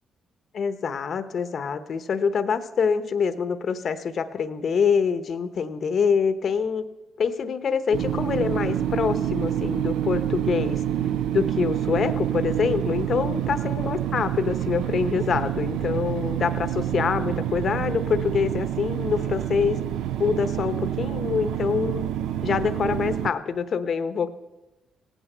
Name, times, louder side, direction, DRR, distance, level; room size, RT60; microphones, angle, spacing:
voice 1, 0.5-6.8 7.2-10.8 11.3-19.8 20.2-22.0 22.4-24.3, left 6 dB, 55° left, 11 dB, 0.9 m, -25 dB
sound 1, 7.9-23.3, right 11 dB, 85° right, 0.5 m, -27 dB
16.5 x 9.1 x 6.7 m, 1.0 s
cardioid pair, 90°, 0 cm